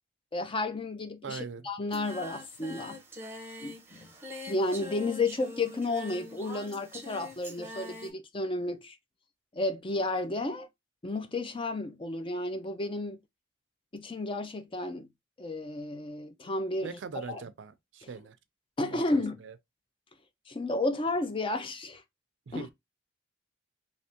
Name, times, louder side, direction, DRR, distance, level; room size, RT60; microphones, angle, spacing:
voice 1, 0.3-3.0 3.6-4.1 4.4-9.0 9.5-10.7 11.0-13.2 13.9-15.1 15.4-17.0 17.3-17.4 18.0-18.1 18.8-19.4 20.5-22.0 22.5-22.6, left 2 dB, 25° left, 0.5 m, -32 dB
voice 2, 1.2-1.7 16.8-18.4 18.9-19.6 22.5-22.7, right 5 dB, 70° right, 0.5 m, -41 dB
Singing, 1.9-8.1, left 1 dB, 15° right, 0.7 m, -44 dB
3.3 x 2.9 x 2.8 m
head